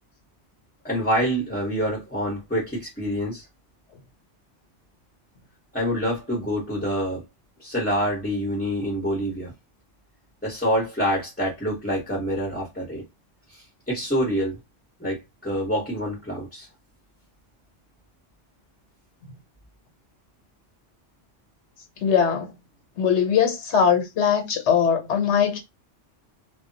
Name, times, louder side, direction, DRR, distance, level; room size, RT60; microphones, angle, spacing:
voice 1, 0.8-3.5 5.7-7.2 7.6-9.5 10.4-13.0 13.5-14.6 15.0-16.7, equal, 10° left, 0.9 m, -26 dB
voice 2, 22.0-22.5 23.0-25.6, left 7 dB, 65° left, 1.1 m, -21 dB
2.3 x 2.2 x 3.8 m
omnidirectional pair, 1.2 m